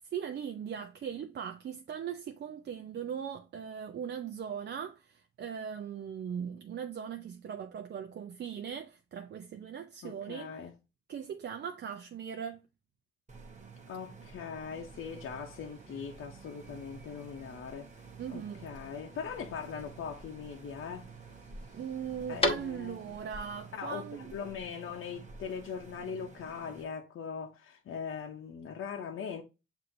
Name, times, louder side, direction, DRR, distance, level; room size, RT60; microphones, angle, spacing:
voice 1, 0.1-10.6 11.1-12.6 18.2-18.6 21.7-24.3, right 8 dB, 55° right, 0.5 m, -39 dB
voice 2, 10.0-10.7 13.9-17.9 18.3-21.1 22.3-23.0 23.8-29.4, left 6 dB, 75° left, 0.7 m, -41 dB
sound 1, 13.3-26.8, right 4 dB, 35° right, 0.9 m, -51 dB
sound 2, 14.7-23.2, left 1 dB, 25° left, 1.2 m, -41 dB
7.5 x 2.7 x 2.6 m
cardioid pair, 100°, 21 cm